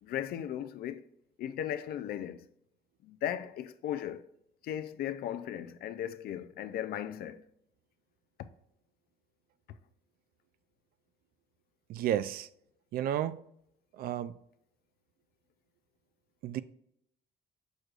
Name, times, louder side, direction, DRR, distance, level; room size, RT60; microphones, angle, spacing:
voice 1, 0.0-1.0 1.4-2.5 3.0-4.3 4.6-7.4, left 10 dB, 65° left, 0.5 m, -37 dB
voice 2, 11.9-12.5 12.9-13.4 13.9-14.4 16.4-16.6, right 11 dB, 60° right, 0.4 m, -32 dB
6.4 x 6.3 x 2.4 m
cardioid pair, 110°, 17 cm